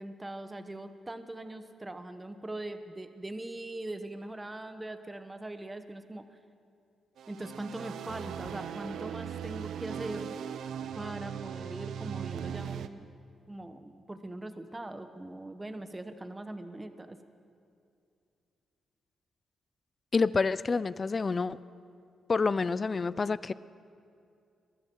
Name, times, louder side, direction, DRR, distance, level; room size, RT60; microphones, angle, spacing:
voice 1, 0.0-6.3 7.3-10.4 10.9-13.1 13.5-17.2, right 1 dB, 20° right, 9 dB, 1.1 m, -41 dB
sound 1, 7.2-12.9, right 8 dB, 80° right, 0.6 m, -39 dB
voice 2, 20.1-21.6 22.3-23.5, left 4 dB, 40° left, 18 dB, 0.4 m, -28 dB
22.5 x 13.5 x 4.7 m, 2.5 s
cardioid pair, 65°, 0 cm